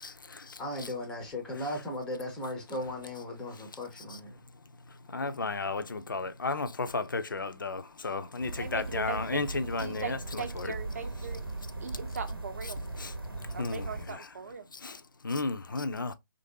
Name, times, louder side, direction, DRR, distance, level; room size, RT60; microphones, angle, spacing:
voice 1, 0.0-0.9 5.1-10.7 13.0-13.1 13.6-14.3 14.8-15.0 15.2-16.1, left 3 dB, 65° left, 0.5 m, -34 dB
voice 2, 0.6-4.4, left 1 dB, 5° left, 0.5 m, -37 dB
sound 1, 8.4-14.1, right 2 dB, 90° right, 0.8 m, -39 dB
voice 3, 8.6-9.4 9.7-11.4 11.8-12.8 13.5-14.7, right 6 dB, 45° right, 0.6 m, -39 dB
3.1 x 2.6 x 2.6 m
figure-of-eight pair, 145°, 12 cm